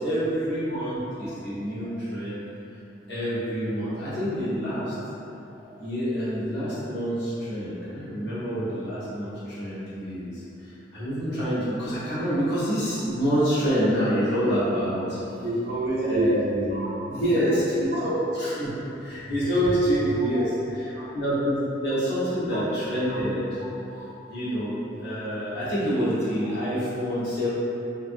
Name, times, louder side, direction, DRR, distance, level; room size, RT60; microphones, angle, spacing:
voice 1, 0.0-2.4 3.1-4.9 5.6-10.4 10.9-15.2 16.0-16.4 17.2-23.6 24.3-27.5, equal, 65° left, -11 dB, 0.9 m, -27 dB
voice 2, 15.4-17.6 20.9-21.1 24.0-24.1, right 1 dB, 60° right, -7 dB, 0.6 m, -28 dB
2.5 x 2.5 x 2.6 m, 2.8 s
head